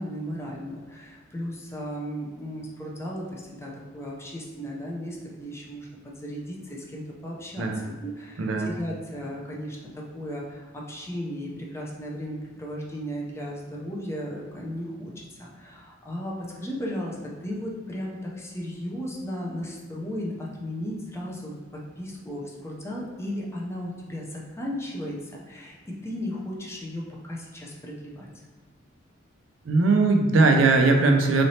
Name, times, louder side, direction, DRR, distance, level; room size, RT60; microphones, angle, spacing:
voice 1, 0.0-25.8 26.0-28.3, equal, 15° left, -3 dB, 0.6 m, -35 dB
voice 2, 8.4-8.7 29.7-31.4, right 3 dB, 70° right, 3 dB, 0.5 m, -20 dB
3.9 x 3.2 x 2.8 m, 1.4 s
head